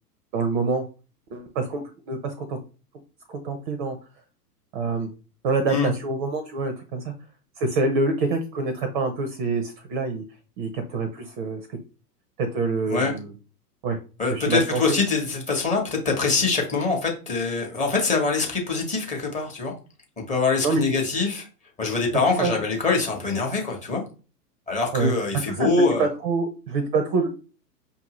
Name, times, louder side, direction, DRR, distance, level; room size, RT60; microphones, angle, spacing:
voice 1, 0.3-0.9 1.3-2.6 3.3-4.0 4.7-5.1 5.4-7.1 7.6-10.2 10.6-11.6 12.4-13.3 13.8-14.0 14.3-14.8 20.6-20.8 22.4-22.6 24.9-25.1 25.5-25.7 26.0-27.3, right 3 dB, 30° right, 8 dB, 0.6 m, -26 dB
voice 2, 14.2-19.7 20.3-21.5 21.8-24.0 24.7-26.1, left 4 dB, 15° left, 0 dB, 0.9 m, -24 dB
5.6 x 2.7 x 2.9 m, 0.35 s
figure-of-eight pair, 110°, 49 cm